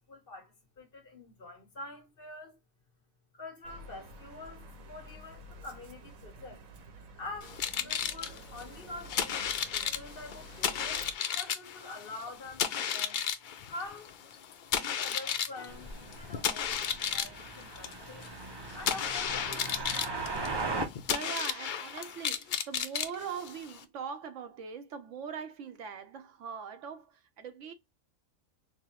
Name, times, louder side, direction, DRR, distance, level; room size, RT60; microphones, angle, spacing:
voice 1, 0.0-2.6 3.3-6.6 7.2-9.4 9.7-13.2 13.7-14.1 14.7-18.3 18.7-19.9, left 2 dB, 45° left, 1.3 m, -46 dB
sound 1, 3.6-11.1, right 1 dB, 85° right, 1.3 m, -50 dB
sound 2, 7.4-23.8, left 8 dB, 75° left, 0.4 m, -34 dB
sound 3, 15.7-20.9, right 3 dB, 35° right, 0.4 m, -38 dB
voice 2, 21.1-27.7, right 7 dB, 70° right, 0.9 m, -41 dB
5.3 x 2.1 x 2.9 m
omnidirectional pair, 1.4 m